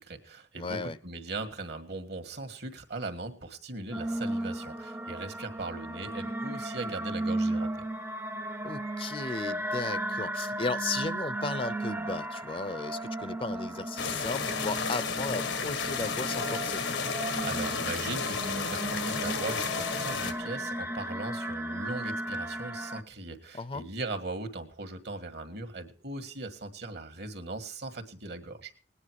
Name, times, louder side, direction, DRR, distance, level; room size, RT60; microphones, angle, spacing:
voice 1, 0.0-7.7 17.4-28.7, right 3 dB, 65° right, 8 dB, 1.8 m, -39 dB
voice 2, 0.5-1.0 8.6-16.8 23.5-23.8, left 3 dB, 30° left, 15 dB, 0.6 m, -35 dB
sound 1, 3.9-23.0, right 1 dB, 10° right, 0.6 m, -35 dB
sound 2, 14.0-20.3, left 5 dB, 90° left, 1.6 m, -32 dB
19.0 x 9.8 x 4.7 m, 0.41 s
head